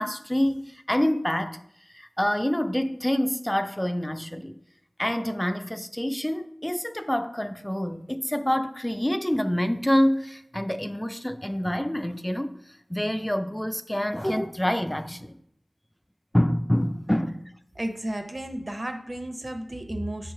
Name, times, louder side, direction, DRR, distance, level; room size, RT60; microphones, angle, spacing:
voice 1, 0.0-1.6 1.9-4.6 5.0-12.5 12.9-15.3 16.3-17.4, equal, 10° left, 0.4 m, -26 dB
voice 2, 17.8-20.3, right 1 dB, 35° right, 0.8 m, -33 dB
6.2 x 3.1 x 5.6 m
wide cardioid pair, 50°, 0 cm